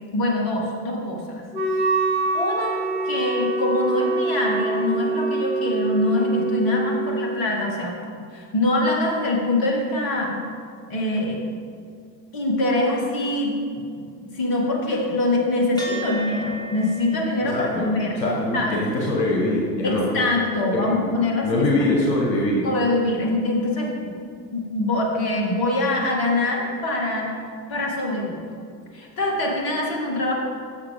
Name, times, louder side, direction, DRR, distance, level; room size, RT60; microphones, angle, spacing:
voice 1, 0.1-1.4 2.3-7.9 8.3-10.5 10.9-11.4 12.3-18.2 18.5-18.8 19.8-21.9 22.6-24.1 24.5-27.4 27.7-28.4 28.9-30.3, left 1 dB, 45° left, -1 dB, 2.4 m, -24 dB
Wind instrument woodwind instrument, 1.5-7.4, right 3 dB, 85° right, 2.1 m, -25 dB
sound 1, 15.8-24.4, left 5 dB, 10° left, 2.4 m, -37 dB
voice 2, 17.4-17.9 18.2-20.1 20.7-20.9 21.4-22.7, left 1 dB, 75° left, -3 dB, 1.7 m, -23 dB
15.0 x 7.0 x 3.7 m, 2.3 s
figure-of-eight pair, 70°, 50 cm